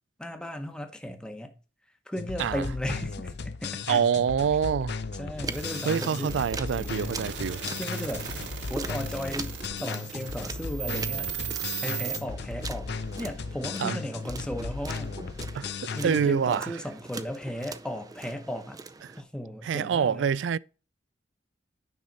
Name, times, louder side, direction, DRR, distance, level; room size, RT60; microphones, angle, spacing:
voice 1, 0.2-1.6 2.1-3.3 3.6-4.0 5.2-7.1 7.8-8.3 8.7-9.5 9.8-11.3 11.8-15.2 15.6-18.8 19.2-20.3, equal, 5° left, 1.0 m, -35 dB
sound 1, 2.2-16.3, left 4 dB, 65° left, 0.6 m, -36 dB
voice 2, 3.9-5.0 5.8-7.6 13.8-14.0 15.5-15.7 16.0-16.7 19.6-20.6, right 7 dB, 90° right, 0.3 m, -26 dB
sound 2, 5.4-19.2, right 3 dB, 20° right, 0.5 m, -42 dB
sound 3, 5.5-12.2, right 9 dB, 75° right, 1.7 m, -37 dB
9.3 x 5.7 x 4.0 m
head